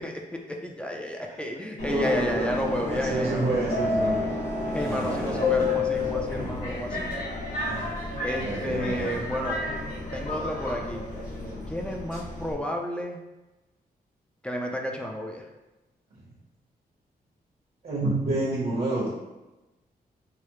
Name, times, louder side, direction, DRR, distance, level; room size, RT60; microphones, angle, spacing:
voice 1, 0.0-3.8 4.7-7.1 8.2-9.6 10.1-11.0 11.7-13.2 14.4-15.5, equal, 5° left, 1 dB, 0.4 m, -31 dB
voice 2, 1.3-2.5 2.9-4.3 4.6-5.6 7.7-7.8 8.4-9.1 16.1-16.3 17.8-19.1, right 2 dB, 65° right, -7 dB, 1.1 m, -30 dB
Subway metro underground, 1.8-12.5, left 2 dB, 60° left, 1.2 m, -30 dB
4.8 x 2.0 x 3.0 m, 1.0 s
wide cardioid pair, 135°, 16 cm